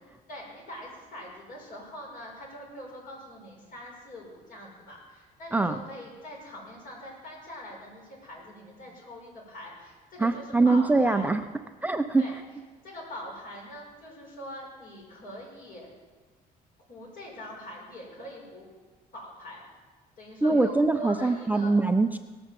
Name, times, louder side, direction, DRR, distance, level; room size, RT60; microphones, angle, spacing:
voice 1, 0.3-11.3 12.2-12.4 12.8-15.9 16.9-18.7 19.1-19.7 20.2-21.8, equal, 55° left, -1 dB, 5.7 m, -43 dB
voice 2, 5.5-5.8 10.2-11.4 11.8-12.3 20.4-22.2, right 3 dB, 10° right, 7 dB, 0.5 m, -23 dB
18.5 x 6.9 x 7.6 m, 1.4 s
cardioid pair, 110°, 17 cm